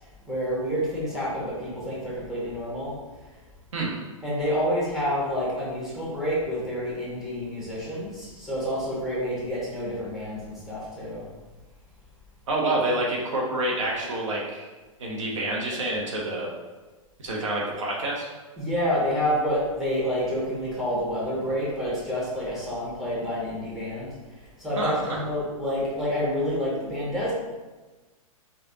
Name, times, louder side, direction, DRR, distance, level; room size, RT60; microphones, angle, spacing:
voice 1, 0.2-2.9 4.2-11.3 18.6-24.1 24.6-27.3, equal, ahead, -7 dB, 1.3 m, -28 dB
voice 2, 12.5-14.7 15.0-16.5 17.2-18.3 24.8-25.2, right 1 dB, 60° right, -3 dB, 0.9 m, -27 dB
4.8 x 2.4 x 2.8 m, 1.2 s
figure-of-eight pair, 105°, 18 cm